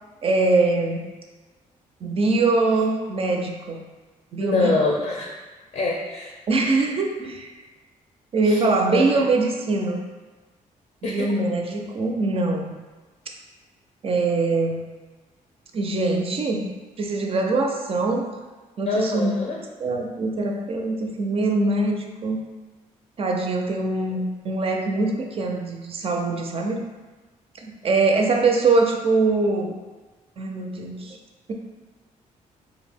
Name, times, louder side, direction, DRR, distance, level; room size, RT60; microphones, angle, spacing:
voice 1, 0.2-1.0 2.0-3.8 4.3-4.7 6.5-7.5 8.3-10.0 11.0-12.7 14.0-14.8 15.7-16.7 17.0-18.4 18.8-19.3 19.8-22.4 23.2-26.8 27.6-29.8 30.4-31.2, right 3 dB, 40° right, 2 dB, 0.4 m, -23 dB
voice 2, 4.4-5.3 5.7-6.3 8.4-8.6 8.9-9.2 11.0-11.3 18.9-19.6, left 2 dB, 45° left, -2 dB, 0.5 m, -25 dB
2.3 x 2.0 x 3.4 m, 1.2 s
cardioid pair, 80°, 15 cm